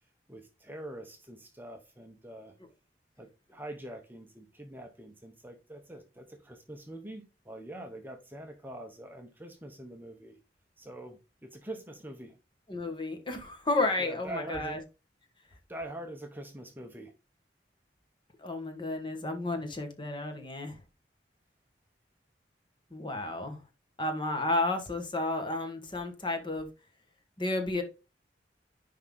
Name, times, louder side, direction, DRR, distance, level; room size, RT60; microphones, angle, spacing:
voice 1, 0.3-2.5 3.2-10.4 10.8-12.4 14.0-14.8 15.7-17.1, right 1 dB, 10° right, 0.8 m, -44 dB
voice 2, 12.7-14.8 18.4-20.8 22.9-23.6 24.0-26.7 27.4-27.8, left 2 dB, 25° left, 1.4 m, -32 dB
10.0 x 3.7 x 3.7 m
head